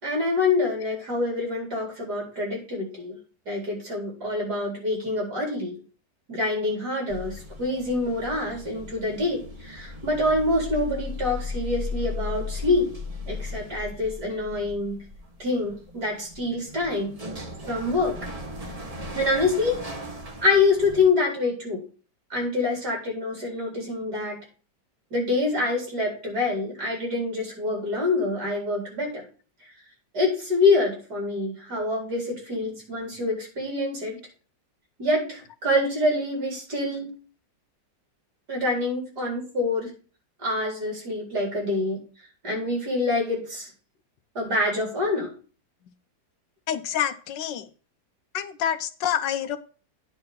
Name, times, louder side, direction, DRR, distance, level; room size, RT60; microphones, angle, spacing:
voice 1, 0.0-3.2 3.5-5.7 6.3-12.9 13.3-15.0 15.4-17.1 17.7-18.1 19.1-19.8 20.4-21.8 22.3-24.4 25.1-29.2 30.1-34.2 35.0-37.1 38.5-39.9 40.4-42.0 42.4-43.7 44.3-45.3, left 2 dB, 55° right, -1 dB, 5.0 m, -26 dB
sound 1, 7.1-21.1, left 3 dB, 20° right, 1.4 m, -37 dB
voice 2, 46.7-47.7 48.3-49.6, left 9 dB, 75° left, 11 dB, 1.4 m, -27 dB
9.5 x 4.3 x 6.9 m, 0.38 s
omnidirectional pair, 2.0 m